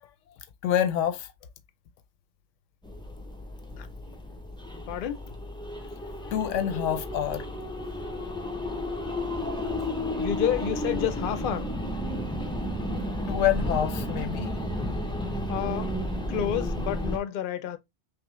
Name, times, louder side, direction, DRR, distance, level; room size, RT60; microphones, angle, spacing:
voice 1, 0.6-1.3 6.2-7.4 13.3-14.6, left 10 dB, 90° left, 1.0 m, -27 dB
sound 1, 2.8-17.2, left 1 dB, 5° left, 0.3 m, -32 dB
voice 2, 4.9-5.2 10.2-11.7 15.5-15.9 16.3-17.8, left 10 dB, 60° left, 0.6 m, -29 dB
5.7 x 2.1 x 3.0 m
omnidirectional pair, 1.2 m